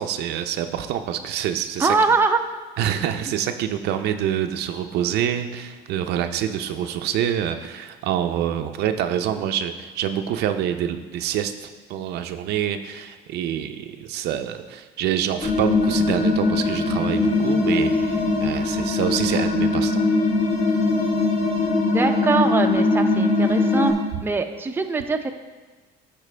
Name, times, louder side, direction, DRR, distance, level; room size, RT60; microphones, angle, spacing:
voice 1, 0.0-1.9 2.8-20.0, right 10 dB, 80° right, 7 dB, 0.5 m, -26 dB
voice 2, 1.8-2.4 21.9-23.9 24.2-25.3, right 4 dB, 15° right, 5 dB, 0.5 m, -22 dB
sound 1, 15.4-23.9, left 3 dB, 45° left, 1.5 m, -21 dB
12.0 x 4.4 x 3.3 m, 1.3 s
cardioid pair, 110°, 17 cm